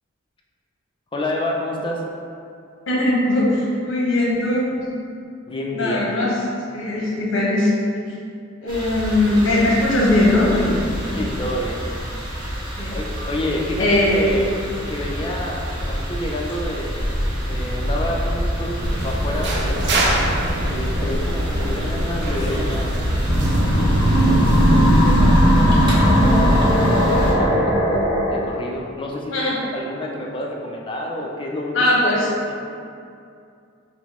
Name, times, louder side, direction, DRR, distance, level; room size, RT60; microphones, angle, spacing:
voice 1, 1.1-2.0 5.5-6.1 11.2-11.8 12.9-14.5 14.9-17.0 17.4-20.1 20.7-27.8 28.3-29.3 29.7-32.1 32.5-32.6, left 1 dB, 25° left, -1 dB, 0.4 m, -29 dB
voice 2, 2.9-4.6 5.7-6.3 6.7-7.7 8.6-11.3 12.8-13.0 13.8-14.3 29.3-29.5 31.7-32.3, left 1 dB, 65° left, -5 dB, 0.8 m, -19 dB
sound 1, 8.7-27.3, equal, 25° right, 0.8 m, -26 dB
sound 2, 18.8-25.2, equal, 60° right, 0.5 m, -24 dB
sound 3, 23.3-28.4, equal, 5° right, 1.4 m, -17 dB
4.9 x 2.0 x 3.6 m, 2.4 s
head